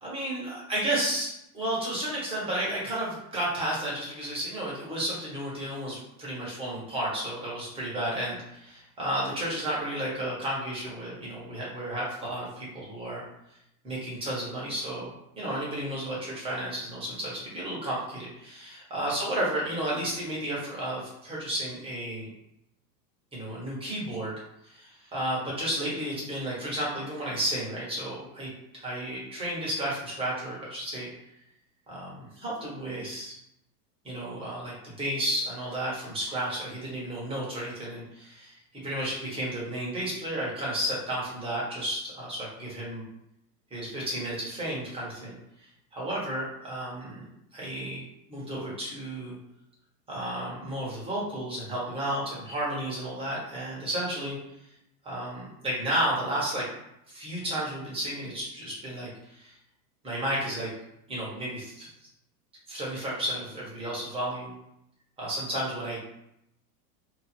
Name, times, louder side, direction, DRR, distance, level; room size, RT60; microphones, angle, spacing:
voice 1, 0.0-1.3 1.5-13.2 13.5-13.6 13.8-22.3 23.3-24.3 24.6-28.5 28.8-31.1 31.9-33.3 34.0-43.0 43.7-47.2 47.5-48.0 48.3-49.4 50.1-54.4 55.0-56.7 57.1-59.6 60.0-60.7 61.1-61.9 62.7-64.5 65.2-66.0, right 1 dB, 10° right, -6 dB, 1.2 m, -32 dB
2.9 x 2.5 x 4.3 m, 0.81 s
supercardioid pair, 150°, 49 cm